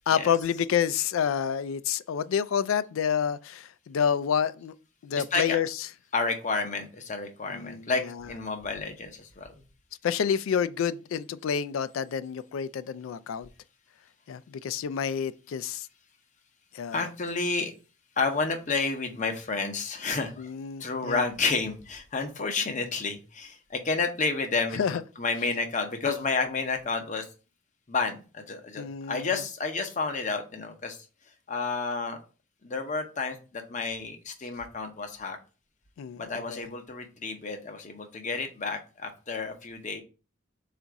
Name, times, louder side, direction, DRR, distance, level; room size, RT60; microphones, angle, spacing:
voice 1, 0.1-4.7 5.0-5.7 7.5-7.9 10.0-13.5 14.3-15.9 16.7-17.1 20.4-21.2 24.7-25.0 28.8-29.4 36.0-36.6, left 7 dB, 80° left, 0.3 m, -28 dB
voice 2, 5.2-5.6 6.1-9.5 16.9-17.7 18.2-20.5 20.8-27.3 27.9-31.0 31.5-32.2 32.6-35.4 36.2-40.0, left 4 dB, 40° left, 0.7 m, -30 dB
4.0 x 2.5 x 4.5 m
head